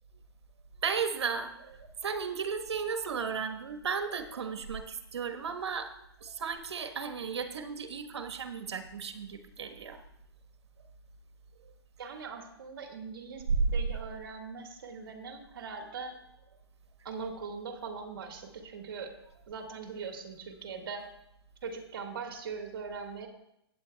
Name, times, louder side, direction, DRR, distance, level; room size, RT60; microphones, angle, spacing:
voice 1, 0.8-5.9 6.2-10.0 11.6-11.7 13.6-13.7, right 5 dB, 75° right, 8 dB, 1.3 m, -35 dB
voice 2, 12.0-16.1 17.0-19.1 19.5-21.1 21.6-23.3, right 5 dB, 55° right, 3 dB, 1.8 m, -41 dB
16.5 x 8.8 x 2.3 m, 0.82 s
hypercardioid pair, 165°, 14 cm